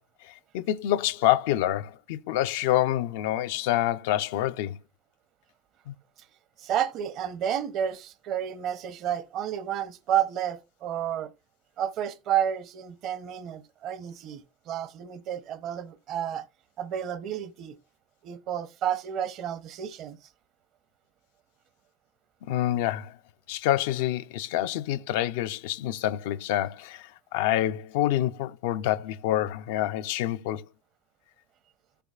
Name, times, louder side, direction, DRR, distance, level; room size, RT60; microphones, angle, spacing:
voice 1, 0.2-4.8 5.9-6.0 22.5-23.2 23.5-30.7, left 13 dB, 80° left, 0.4 m, -27 dB
voice 2, 6.6-11.3 11.8-16.4 16.8-17.8 18.2-20.2, right 10 dB, 55° right, 0.7 m, -31 dB
14.5 x 6.8 x 2.4 m
supercardioid pair, 110°, 0 cm